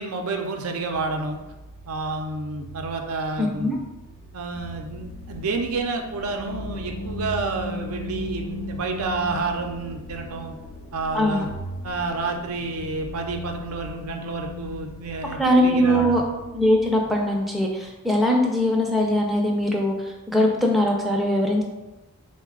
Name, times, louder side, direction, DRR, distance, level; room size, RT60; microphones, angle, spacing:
voice 1, 0.0-1.4 1.9-3.8 4.3-10.5 10.9-11.5 11.8-16.2, right 3 dB, 90° right, 3 dB, 0.5 m, -29 dB
sound 1, 0.9-17.7, right 4 dB, 40° right, 0.6 m, -43 dB
voice 2, 3.4-3.8 11.1-11.5 15.4-16.2 16.5-21.6, equal, ahead, -1 dB, 0.4 m, -21 dB
sound 2, 4.5-15.1, left 3 dB, 70° left, 0.3 m, -37 dB
3.9 x 2.1 x 3.6 m, 1.1 s
head